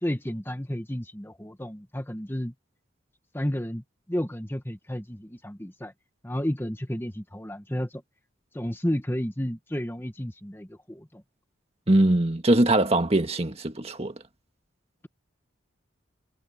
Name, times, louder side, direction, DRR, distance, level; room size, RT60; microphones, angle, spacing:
voice 1, 0.0-2.5 3.3-5.9 6.2-8.0 8.5-11.2, equal, 10° left, 1.3 m, -32 dB
voice 2, 11.9-14.1, right 1 dB, 30° right, 1.8 m, -22 dB
head